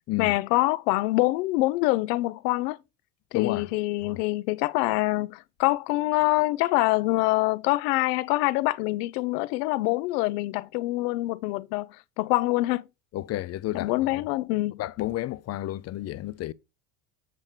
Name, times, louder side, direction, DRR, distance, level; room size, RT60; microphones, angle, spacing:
voice 1, 0.2-2.8 3.3-12.8 13.7-14.7, left 19 dB, 80° left, 0.6 m, -25 dB
voice 2, 3.3-3.7 4.0-4.2 13.1-14.2 14.8-16.5, left 15 dB, 35° left, 0.4 m, -31 dB
7.6 x 6.4 x 3.1 m
supercardioid pair, 85°, 47 cm